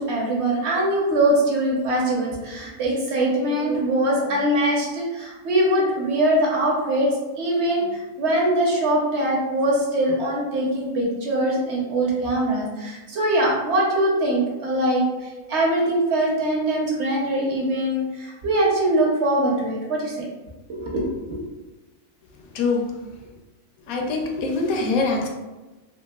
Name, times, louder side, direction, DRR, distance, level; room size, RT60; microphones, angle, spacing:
voice 1, 0.0-7.1 7.4-7.9 8.2-20.2 20.7-21.0 21.3-21.4, right 1 dB, 60° right, -2 dB, 0.9 m, -22 dB
voice 2, 22.3-23.0 23.9-25.3, left 3 dB, 85° left, 1 dB, 1.0 m, -24 dB
3.0 x 2.6 x 2.2 m, 1.1 s
omnidirectional pair, 1.4 m